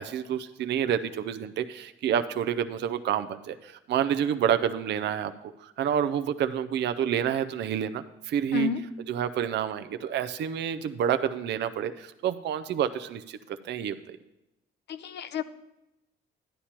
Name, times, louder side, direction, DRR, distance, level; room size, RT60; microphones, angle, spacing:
voice 1, 0.0-8.7 9.1-14.2, right 9 dB, 60° right, 10 dB, 0.5 m, -29 dB
voice 2, 14.9-15.4, left 7 dB, 60° left, 12 dB, 0.6 m, -30 dB
11.0 x 10.0 x 2.9 m, 0.93 s
cardioid pair, 90°, 20 cm